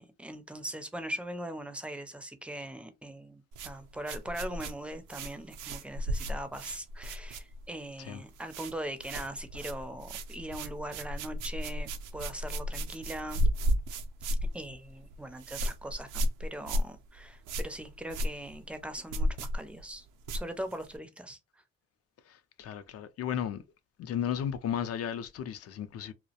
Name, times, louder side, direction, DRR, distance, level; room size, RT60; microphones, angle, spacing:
voice 1, 0.0-13.5 14.5-20.1 20.3-21.4, right 1 dB, 5° right, 0.4 m, -40 dB
sound 1, 3.5-7.9 8.1-8.7 9.0-21.0, equal, 85° right, 0.5 m, -34 dB
voice 2, 22.3-23.6 24.0-26.1, left 9 dB, 55° left, 0.4 m, -34 dB
2.3 x 2.1 x 2.7 m
cardioid pair, 90°, 30 cm